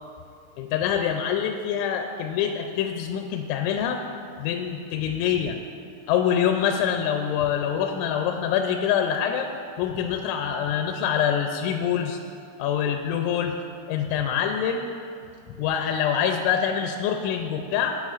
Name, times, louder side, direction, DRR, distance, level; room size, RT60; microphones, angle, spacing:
voice 1, 0.6-4.0 4.4-5.6 6.1-9.5 9.8-12.2 12.6-13.6 13.9-14.9 15.6-18.0, left 8 dB, 85° left, 4 dB, 2.8 m, -25 dB
15.5 x 8.3 x 2.4 m, 2.4 s
omnidirectional pair, 5.4 m